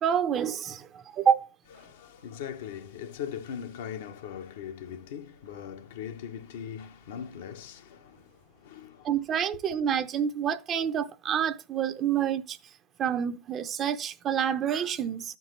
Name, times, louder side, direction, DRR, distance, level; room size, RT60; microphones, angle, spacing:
voice 1, 0.0-1.5 9.0-12.6 13.0-15.4, right 8 dB, 30° right, 0.7 m, -28 dB
voice 2, 1.8-9.1, left 8 dB, 60° left, 0.8 m, -40 dB
13.5 x 4.6 x 3.1 m
figure-of-eight pair, 90°, 0 cm